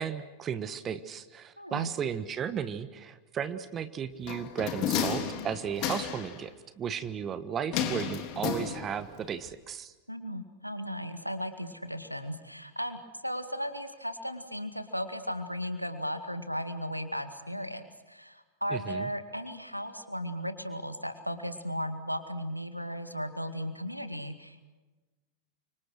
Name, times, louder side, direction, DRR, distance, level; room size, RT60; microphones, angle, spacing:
voice 1, 0.0-9.9 18.7-19.1, right 8 dB, 25° right, 13 dB, 1.3 m, -35 dB
voice 2, 1.6-1.9 10.1-24.6, equal, 90° right, 10 dB, 2.0 m, -36 dB
sound 1, 4.3-6.4 7.7-9.2 9.5-9.6, left 8 dB, 40° left, 3.3 m, -32 dB
29.5 x 25.5 x 6.3 m, 1.2 s
figure-of-eight pair, 90°, 0 cm